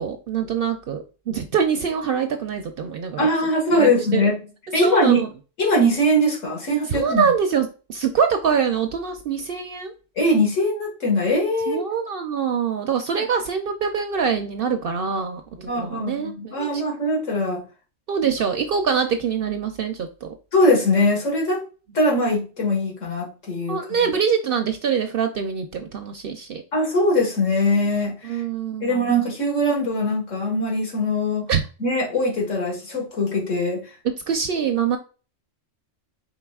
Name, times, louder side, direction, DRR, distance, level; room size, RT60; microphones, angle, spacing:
voice 1, 0.0-3.3 3.7-4.3 4.8-5.3 6.9-9.9 11.7-16.8 18.1-20.3 23.7-26.6 28.2-29.1 31.5-31.6 34.3-35.0, right 6 dB, 60° right, 6 dB, 0.6 m, -24 dB
voice 2, 3.2-4.4 4.7-5.2 5.6-7.2 10.2-11.8 15.7-17.6 18.3-18.4 20.5-21.6 21.9-23.8 26.7-28.4 28.8-31.4 31.8-33.9, left 1 dB, 75° left, -1 dB, 1.9 m, -21 dB
4.7 x 3.7 x 2.3 m, 0.34 s
omnidirectional pair, 1.3 m